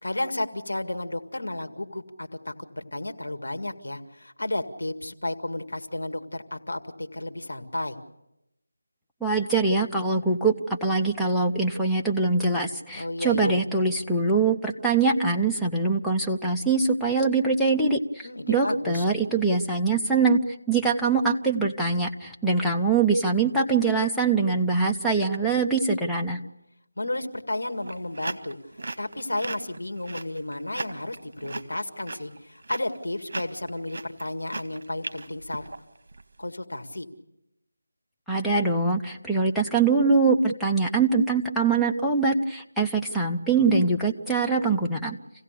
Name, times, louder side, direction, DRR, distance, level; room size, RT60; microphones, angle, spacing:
voice 1, 0.0-8.0 13.0-13.5 18.2-19.0 27.0-28.6 29.0-35.7 36.4-37.1, left 1 dB, 80° left, 6 dB, 2.1 m, -32 dB
voice 2, 9.2-20.4 20.7-26.4 38.3-45.2, right 4 dB, ahead, -3 dB, 0.7 m, -23 dB
sound 1, 27.6-36.2, right 2 dB, 55° right, 1.5 m, -37 dB
27.5 x 16.5 x 6.8 m, 0.89 s
figure-of-eight pair, 170°, 0 cm